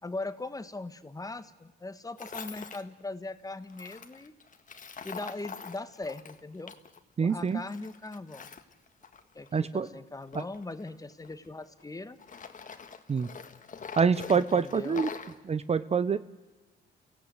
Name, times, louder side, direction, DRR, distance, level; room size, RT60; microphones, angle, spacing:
voice 1, 0.0-4.3 5.0-6.7 7.2-8.5 9.3-12.2 14.3-15.0, left 2 dB, 15° left, 11 dB, 1.4 m, -40 dB
Tools, 2.2-2.8 3.7-7.0 7.3-9.6 10.2-11.8 12.2-15.4, left 6 dB, 40° left, 1.7 m, -44 dB
voice 2, 7.2-7.6 9.5-9.9 10.3-10.4 13.1-13.3 14.0-15.1 15.4-16.2, right 5 dB, 30° right, 14 dB, 0.7 m, -26 dB
29.5 x 16.5 x 8.1 m, 1.1 s
cardioid pair, 90°, 20 cm